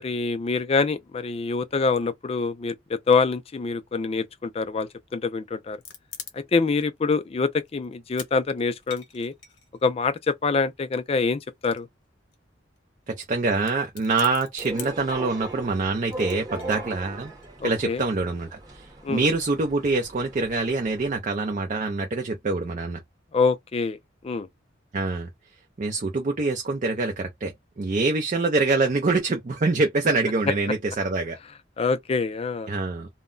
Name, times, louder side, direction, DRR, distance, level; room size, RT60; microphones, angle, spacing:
voice 1, 0.0-5.8 6.3-9.3 9.8-11.9 17.6-18.0 19.0-19.2 23.3-24.0 24.2-24.5 31.8-32.7, left 4 dB, 30° left, 0.3 m, -25 dB
sound 1, 5.6-6.8 7.1-7.2 7.7-8.3 8.6-10.1 10.9-12.0 12.3-12.4 12.6-12.8 13.2-13.3 13.5-15.1 16.1-17.5, left 7 dB, 75° left, 0.8 m, -43 dB
voice 2, 13.1-17.3 17.6-23.0 24.9-25.3 25.8-31.4 32.7-33.1, right 3 dB, 40° right, 0.5 m, -25 dB
sound 2, 14.6-21.2, right 2 dB, 20° right, 0.9 m, -39 dB
2.1 x 2.1 x 3.7 m
head